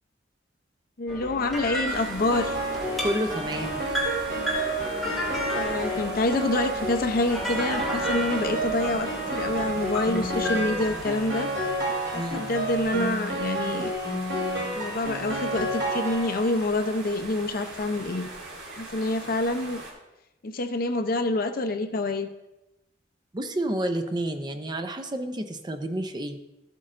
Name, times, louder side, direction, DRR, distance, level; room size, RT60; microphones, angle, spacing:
voice 1, 1.0-2.6 5.5-11.5 12.1-13.9 14.8-18.3 18.8-19.8 20.4-22.3, left 2 dB, 50° left, 7 dB, 0.6 m, -27 dB
sound 1, 1.1-11.0, left 1 dB, ahead, 1.6 m, -33 dB
sound 2, 1.9-19.9, right 2 dB, 80° right, 2.6 m, -41 dB
Piano, 2.3-16.7, right 1 dB, 60° right, 3.4 m, -31 dB
voice 2, 3.0-3.8 12.1-12.4 23.3-26.4, right 1 dB, 20° right, 7 dB, 0.5 m, -30 dB
13.5 x 8.3 x 2.5 m, 0.96 s
head